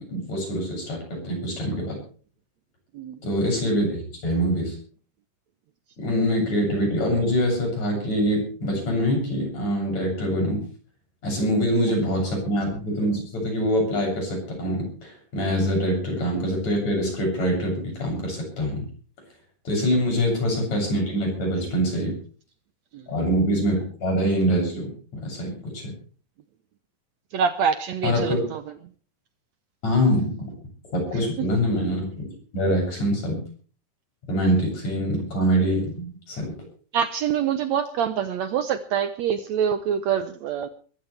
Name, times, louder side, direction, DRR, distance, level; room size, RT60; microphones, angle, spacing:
voice 1, 0.0-2.0 3.2-4.8 6.0-10.6 11.2-18.8 19.7-22.2 23.1-25.9 28.0-28.4 29.8-30.5 30.9-33.4 34.3-36.6, equal, 55° left, 9.1 m, -24 dB
voice 2, 27.3-28.6 31.4-31.5 36.9-40.7, right 8 dB, 70° right, 1.9 m, -25 dB
22.5 x 15.0 x 3.4 m
omnidirectional pair, 3.8 m